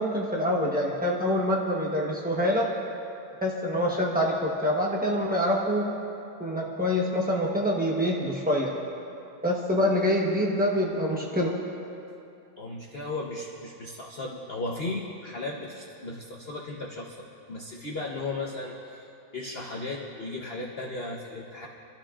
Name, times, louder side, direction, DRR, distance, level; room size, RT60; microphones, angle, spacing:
voice 1, 0.0-2.6 3.4-5.9 6.4-8.7 9.4-11.6, left 1 dB, 10° right, -3 dB, 0.5 m, -26 dB
voice 2, 12.6-17.2 17.5-19.1 19.3-21.7, left 2 dB, 45° left, -1 dB, 0.8 m, -35 dB
26.0 x 13.5 x 2.5 m, 2.8 s
omnidirectional pair, 2.2 m